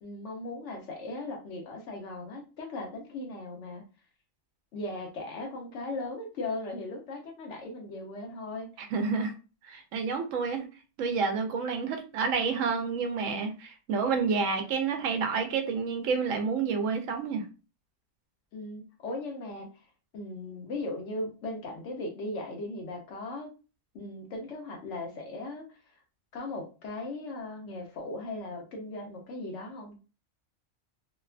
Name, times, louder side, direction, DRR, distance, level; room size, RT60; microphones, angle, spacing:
voice 1, 0.0-3.8 4.7-8.9 18.5-19.9 20.1-23.5 23.9-25.8 26.3-30.0, left 2 dB, 65° left, 2 dB, 1.0 m, -38 dB
voice 2, 8.9-9.3 9.6-10.7 11.0-17.5, right 5 dB, 75° right, 5 dB, 0.9 m, -29 dB
2.9 x 2.2 x 2.4 m, 0.33 s
omnidirectional pair, 1.4 m